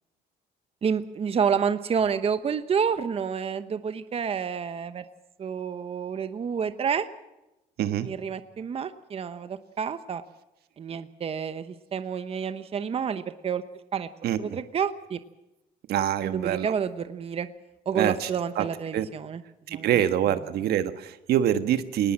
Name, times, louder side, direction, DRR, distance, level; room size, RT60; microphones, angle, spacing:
voice 1, 0.8-5.0 5.4-7.1 8.0-10.2 10.8-13.6 13.9-14.1 14.4-15.2 16.2-17.5 17.9-19.4 19.7-20.0 20.3-20.4, right 7 dB, 35° right, 11 dB, 1.0 m, -29 dB
voice 2, 7.8-8.1 14.2-14.6 15.9-16.7 17.9-18.3 18.6-18.7 18.9-19.1 19.7-22.1, right 10 dB, 70° right, 10 dB, 1.4 m, -25 dB
22.0 x 19.0 x 7.5 m, 0.96 s
cardioid pair, 110°, 17 cm